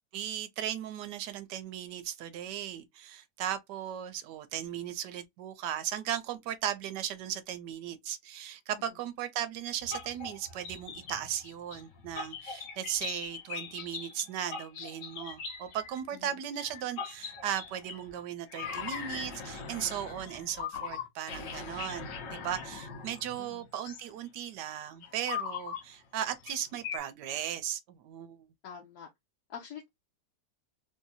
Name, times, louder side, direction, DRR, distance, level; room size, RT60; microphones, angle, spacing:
voice 1, 0.1-28.5, right 10 dB, 80° right, 1.2 m, -37 dB
sound 1, 9.8-16.0 16.6-18.2 18.5-24.1 25.0-25.8 26.5-26.6 26.8-27.0, left 6 dB, 90° left, 1.6 m, -40 dB
voice 2, 28.6-29.1 29.5-29.9, left 7 dB, 70° left, 1.2 m, -46 dB
3.6 x 2.7 x 2.6 m
omnidirectional pair, 1.9 m